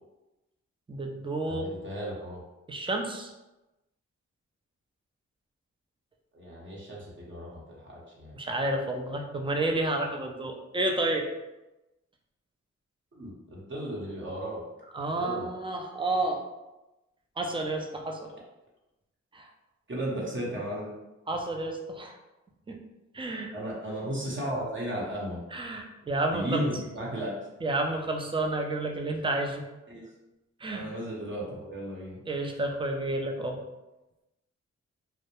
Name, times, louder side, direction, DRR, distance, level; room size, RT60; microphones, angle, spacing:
voice 1, 0.9-1.7 2.7-3.3 8.3-11.3 14.9-16.4 17.4-18.3 19.3-19.5 21.3-22.2 22.7-22.8 23.1-23.5 25.5-26.6 27.6-29.6 30.6-30.9 32.3-33.6, right 2 dB, 20° right, 2 dB, 0.4 m, -30 dB
voice 2, 1.5-2.4 6.3-8.4 13.1-14.6 15.2-15.5 19.9-20.9 23.5-25.4 26.3-27.4 29.9-30.0 30.7-32.2, right 1 dB, 40° right, -5 dB, 0.8 m, -35 dB
2.2 x 2.0 x 2.9 m, 1.0 s
cardioid pair, 60°, 29 cm